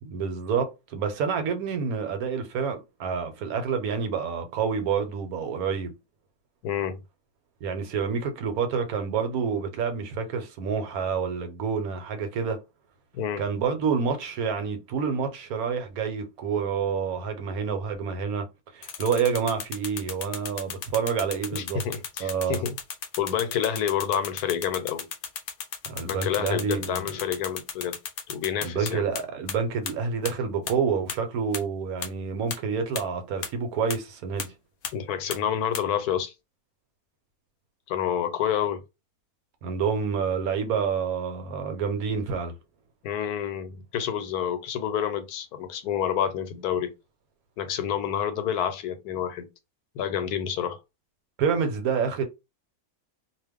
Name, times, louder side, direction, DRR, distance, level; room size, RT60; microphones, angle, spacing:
voice 1, 0.0-5.9 7.6-12.6 13.4-18.5 18.7-21.8 22.2-22.6 25.8-27.0 28.6-34.5 39.6-42.5 51.4-52.2, right 6 dB, 75° right, 1.1 m, -28 dB
voice 2, 6.6-7.0 13.1-13.4 21.5-22.7 23.2-25.1 26.0-28.0 28.3-29.0 34.9-36.3 37.9-38.8 43.0-46.9 47.6-49.5 49.9-50.8, left 9 dB, 85° left, 1.1 m, -28 dB
sound 1, 18.8-29.2 29.5-29.6 29.9-30.0 30.3-30.4 30.7-30.8 31.1-31.2 31.5-31.6 32.0-32.1 32.5-32.6 33.0-33.1 33.4-33.5 33.9-34.0 34.4-34.5 34.8-34.9 35.3-35.4 35.7-35.8, left 7 dB, 65° left, 0.8 m, -34 dB
2.4 x 2.3 x 3.4 m
omnidirectional pair, 1.6 m